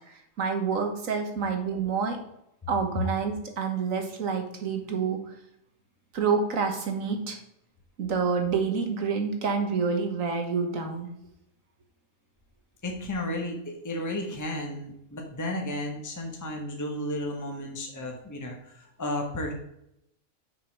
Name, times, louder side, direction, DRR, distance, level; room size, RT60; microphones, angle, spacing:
voice 1, 0.1-2.2 2.7-5.3 6.1-7.4 8.0-11.1, right 5 dB, 70° right, 4 dB, 1.7 m, -28 dB
voice 2, 12.8-19.5, left 1 dB, 15° left, 1 dB, 1.1 m, -33 dB
6.5 x 5.3 x 5.2 m, 0.80 s
omnidirectional pair, 1.4 m